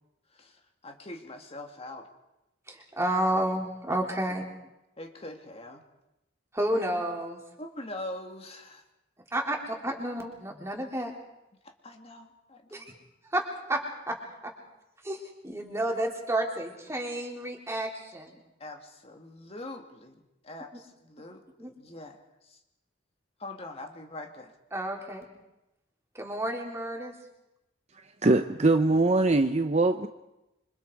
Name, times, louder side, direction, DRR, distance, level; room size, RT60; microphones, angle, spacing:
voice 1, 0.3-2.1 5.0-5.8 7.6-8.8 11.6-12.9 18.6-22.6 23.4-24.5, left 1 dB, 30° left, 4 dB, 2.2 m, -43 dB
voice 2, 2.7-4.5 6.5-7.4 9.3-11.1 12.7-12.9 13.2-14.2 14.4-14.5 15.0-18.4 21.2-21.3 21.6-21.7 24.7-25.3 26.1-27.2, right 1 dB, 15° right, 0 dB, 3.7 m, -31 dB
voice 3, 28.2-30.1, right 2 dB, 35° right, 7 dB, 0.8 m, -22 dB
27.0 x 25.5 x 4.8 m, 0.91 s
head